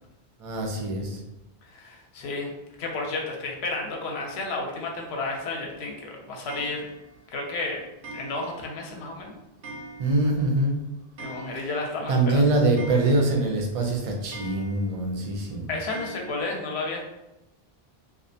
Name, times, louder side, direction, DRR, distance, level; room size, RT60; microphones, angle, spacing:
voice 1, 0.4-1.2 10.0-10.8 12.1-15.7, right 2 dB, 55° right, 1 dB, 0.4 m, -24 dB
voice 2, 1.7-2.5 2.8-6.8 7.3-7.8 8.1-9.3 11.2-12.4 15.7-17.1, left 3 dB, 90° left, 0 dB, 0.8 m, -32 dB
Clock, 6.5-7.2 8.0-8.8 9.1-9.2 9.6-10.4 10.7-10.8 11.0-12.0 12.3-12.4 12.8-13.6 14.3-15.0 15.9-16.4, right 2 dB, 90° right, 0.9 m, -42 dB
2.4 x 2.1 x 2.6 m, 0.95 s
omnidirectional pair, 1.1 m